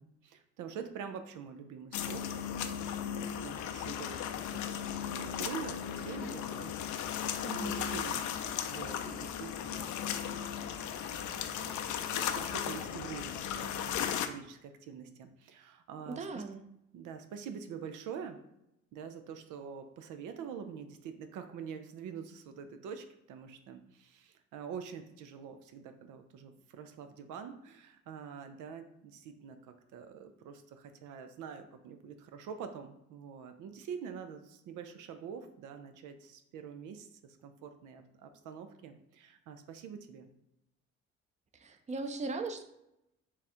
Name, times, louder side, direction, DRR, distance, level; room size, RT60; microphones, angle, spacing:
voice 1, 0.0-2.3 2.6-4.8 5.2-7.3 7.6-16.4 16.9-18.4 18.9-40.3, right 7 dB, 85° right, 8 dB, 0.5 m, -46 dB
sound 1, 1.9-14.3, left 9 dB, 75° left, 0.5 m, -36 dB
voice 2, 7.4-7.8 16.1-16.6 41.6-42.6, right 3 dB, 25° right, 7 dB, 0.5 m, -38 dB
4.0 x 2.4 x 4.2 m, 0.84 s
cardioid pair, 90°, 30 cm